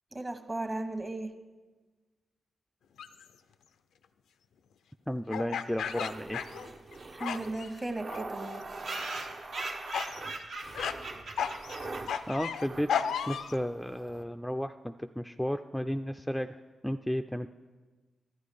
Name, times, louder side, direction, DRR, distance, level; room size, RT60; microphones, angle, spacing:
voice 1, 0.1-1.3 7.1-8.6, right 2 dB, 30° right, 7 dB, 1.1 m, -36 dB
sound 1, 3.0-3.2 5.3-6.9 7.2-7.7 8.1-8.6 9.0-9.2 9.9-10.2 10.7-11.0 11.4-13.6, left 7 dB, 80° left, 0.3 m, -34 dB
voice 2, 5.1-6.4 12.3-16.6 16.8-17.5, equal, 5° left, 7 dB, 0.3 m, -33 dB
sound 2, 5.8-14.2, right 3 dB, 50° right, 0.7 m, -44 dB
sound 3, 6.6-6.7 7.0-7.1 7.3-7.4 7.6-7.7 8.3-12.6, right 2 dB, 75° right, 1.0 m, -40 dB
12.5 x 9.2 x 3.4 m, 1.3 s
supercardioid pair, 40°, 0 cm